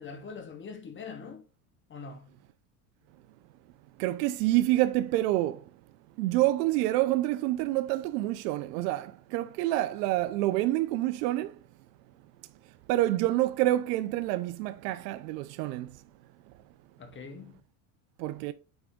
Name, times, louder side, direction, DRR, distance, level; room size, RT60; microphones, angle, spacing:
voice 1, 0.0-1.4 1.9-2.4 17.0-17.6, left 5 dB, 25° left, 0.9 m, -43 dB
voice 2, 4.0-5.6 6.2-11.5 12.9-15.9 18.2-18.5, right 15 dB, 85° right, 0.6 m, -27 dB
8.8 x 3.4 x 3.5 m
supercardioid pair, 130°, 48 cm